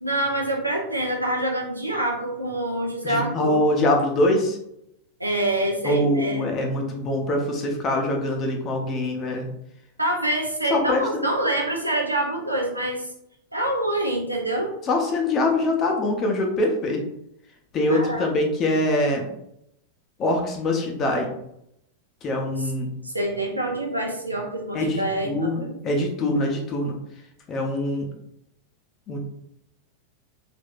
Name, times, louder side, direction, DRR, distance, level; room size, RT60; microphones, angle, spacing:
voice 1, 0.0-3.6 5.2-6.5 10.0-13.0 13.5-14.7 17.9-18.3 22.6-22.7 23.0-25.7, right 1 dB, 85° right, 0 dB, 0.7 m, -26 dB
voice 2, 3.0-4.6 5.8-9.5 10.7-11.1 14.8-17.0 17.7-19.3 20.2-21.3 22.2-22.9 24.7-27.0 27.5-28.1 29.1-29.2, left 1 dB, 30° left, 2 dB, 0.8 m, -23 dB
3.4 x 3.1 x 2.5 m, 0.78 s
figure-of-eight pair, 90°, 0 cm